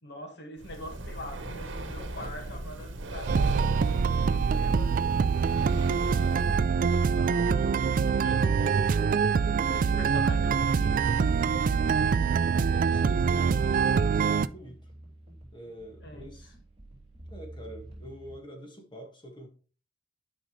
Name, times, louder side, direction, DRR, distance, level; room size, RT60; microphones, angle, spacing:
voice 1, 0.0-7.7 8.1-9.2 9.5-12.4 16.0-16.5, left 1 dB, 60° left, 1.8 m, -45 dB
Breathing, 0.6-6.7, right 2 dB, 80° right, 1.1 m, -38 dB
sound 1, 3.3-14.5, right 6 dB, 45° right, 0.3 m, -25 dB
sound 2, 9.4-18.4, right 1 dB, 30° right, 3.1 m, -50 dB
voice 2, 9.7-10.0 12.5-14.9 15.5-16.5 17.3-19.5, right 1 dB, 25° left, 1.8 m, -46 dB
11.0 x 5.2 x 3.2 m
head